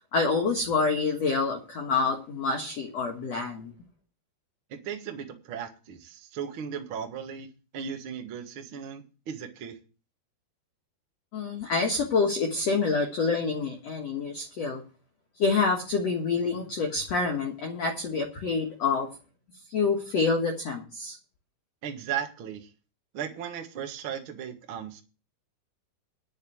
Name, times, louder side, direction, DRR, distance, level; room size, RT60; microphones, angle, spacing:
voice 1, 0.1-3.7 11.3-14.8 15.4-19.1 19.7-21.2, left 4 dB, 55° left, 1 dB, 2.1 m, -27 dB
voice 2, 4.7-9.8 21.8-22.7 23.1-25.0, right 8 dB, 55° right, 5 dB, 1.4 m, -36 dB
10.5 x 6.6 x 7.8 m, 0.34 s
omnidirectional pair, 4.7 m